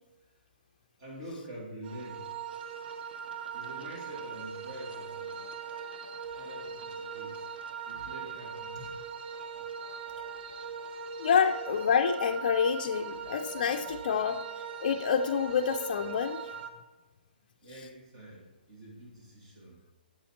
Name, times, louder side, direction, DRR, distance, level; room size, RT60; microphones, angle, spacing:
voice 1, 1.0-2.3 3.5-5.5 6.2-7.5 7.9-9.0 17.6-19.8, right 1 dB, 40° right, -3 dB, 2.1 m, -46 dB
sound 1, 1.8-16.7, right 6 dB, 75° right, 0.7 m, -40 dB
voice 2, 11.2-14.4 14.8-16.4, left 7 dB, 50° left, 3 dB, 0.4 m, -27 dB
7.9 x 4.1 x 4.3 m, 1.2 s
hypercardioid pair, 160°, 5 cm